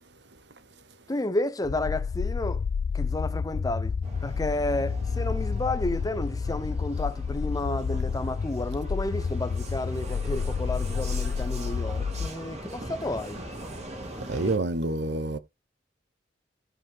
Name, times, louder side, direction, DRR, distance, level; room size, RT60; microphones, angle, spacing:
voice 1, 1.1-2.6 2.9-4.0 4.2-13.4, left 2 dB, 20° left, 0.7 m, -31 dB
sound 1, 1.6-12.3, left 5 dB, 60° left, 0.4 m, -30 dB
Vehicle, 4.0-14.6, right 1 dB, 40° right, 2.1 m, -41 dB
voice 2, 14.3-15.4, right 2 dB, 65° right, 0.9 m, -27 dB
13.5 x 5.0 x 3.5 m
head